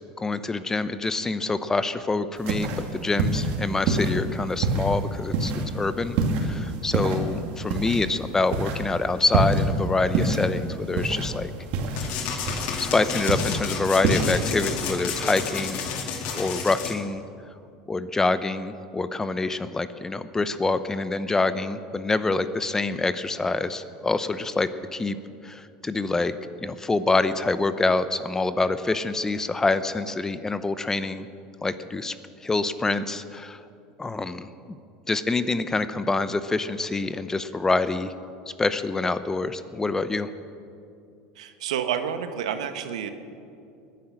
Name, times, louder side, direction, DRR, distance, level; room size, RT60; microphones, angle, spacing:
voice 1, 0.2-11.5 12.8-15.8 16.3-17.2 17.9-25.2 25.4-26.3 26.6-31.3 31.6-32.2 32.4-33.6 34.0-34.8 35.1-38.1 38.6-40.3, left 3 dB, 15° left, 13 dB, 0.8 m, -26 dB
sound 1, 2.4-14.8, right 2 dB, 65° right, 2.5 m, -27 dB
sound 2, 12.0-16.9, left 6 dB, 60° left, 2.3 m, -31 dB
voice 2, 41.3-43.1, right 8 dB, 90° right, 9 dB, 1.2 m, -29 dB
20.5 x 10.0 x 6.4 m, 2.5 s
supercardioid pair, 105°, 3 cm